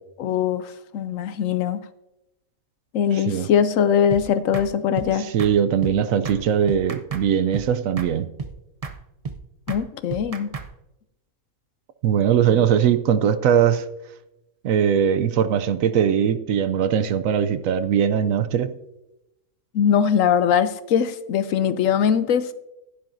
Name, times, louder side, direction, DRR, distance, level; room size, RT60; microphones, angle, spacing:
voice 1, 0.2-1.8 2.9-5.3 9.7-10.5 12.5-12.6 19.7-22.5, left 8 dB, 70° left, 13 dB, 0.9 m, -21 dB
voice 2, 3.1-3.5 5.2-8.3 12.0-13.8 14.6-18.7, right 8 dB, 70° right, 12 dB, 1.0 m, -20 dB
sound 1, 4.1-4.2 4.5-4.7 5.0-5.1 5.4-5.5 5.8-6.0 6.2-6.4 6.7-7.3 7.5-7.7 8.0-8.1 8.4-8.5 8.8-9.0 9.2-9.4 9.7-9.8 10.1-10.7, right 5 dB, 50° right, 0.4 m, -32 dB
15.0 x 10.5 x 2.6 m, 0.91 s
omnidirectional pair, 1.6 m